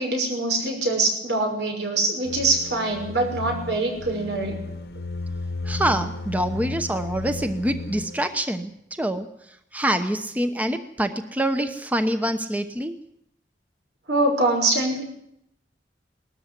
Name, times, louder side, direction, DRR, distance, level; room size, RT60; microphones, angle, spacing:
voice 1, 0.0-4.6 14.1-15.0, right 2 dB, 85° right, 2 dB, 6.2 m, -24 dB
sound 1, 2.3-8.2, left 2 dB, 75° left, 1.3 m, -34 dB
voice 2, 5.6-9.3 9.7-13.0, right 1 dB, 10° right, 8 dB, 0.9 m, -25 dB
19.5 x 13.5 x 10.0 m, 0.76 s
head